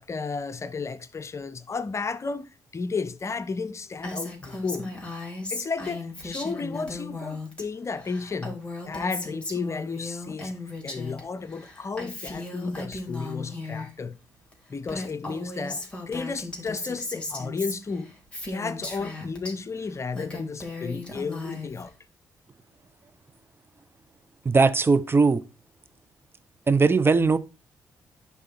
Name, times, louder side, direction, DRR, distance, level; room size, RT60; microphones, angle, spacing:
voice 1, 0.0-4.9 5.5-8.6 8.9-10.5 10.8-14.2 14.7-18.1 18.5-21.9, left 4 dB, 40° left, 0.7 m, -33 dB
Female speech woman speaking, 4.0-7.6 7.9-11.2 11.5-13.9 14.5-14.6 14.8-19.5 20.0-21.9, left 2 dB, 15° left, 3.4 m, -36 dB
voice 2, 24.4-25.4 26.7-27.4, right 4 dB, 30° right, 0.7 m, -19 dB
10.0 x 3.7 x 4.4 m
hypercardioid pair, 50°, 8 cm